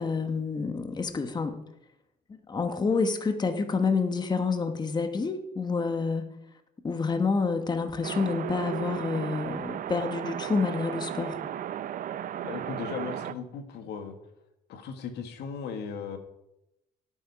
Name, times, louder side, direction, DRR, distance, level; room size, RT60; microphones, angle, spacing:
voice 1, 0.0-1.6 2.5-6.3 6.8-11.4, left 4 dB, 25° left, 7 dB, 1.3 m, -28 dB
sound 1, 8.0-13.3, right 10 dB, 55° right, 0.7 m, -35 dB
voice 2, 12.4-14.1 14.7-16.2, left 6 dB, 80° left, 7 dB, 1.9 m, -37 dB
17.0 x 9.1 x 4.9 m, 0.87 s
cardioid pair, 110°, 17 cm